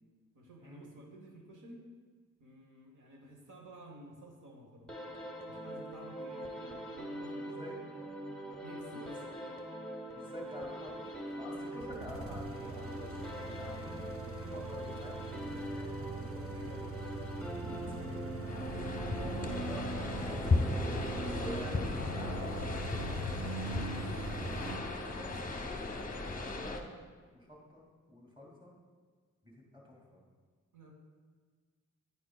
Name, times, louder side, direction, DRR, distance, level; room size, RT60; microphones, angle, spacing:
voice 1, 0.3-1.8 2.4-4.9 5.5-8.1 8.6-9.6 11.4-11.8 17.4-18.1 25.0-25.6 30.7-30.9, right 1 dB, 80° right, 1 dB, 1.1 m, -53 dB
sound 1, 4.9-22.1, right 1 dB, 5° left, 0.9 m, -43 dB
voice 2, 10.1-17.3 17.8-18.2 19.2-20.4 21.3-24.1 25.2-25.8 26.1-27.0 27.3-28.8 29.4-30.2, left 1 dB, 15° right, -2 dB, 2.2 m, -49 dB
sound 2, 11.3-24.8, right 2 dB, 45° right, 0.7 m, -42 dB
sound 3, 18.5-26.8, left 3 dB, 25° left, 0.7 m, -36 dB
9.8 x 9.6 x 2.3 m, 1.5 s
wide cardioid pair, 135°, 30 cm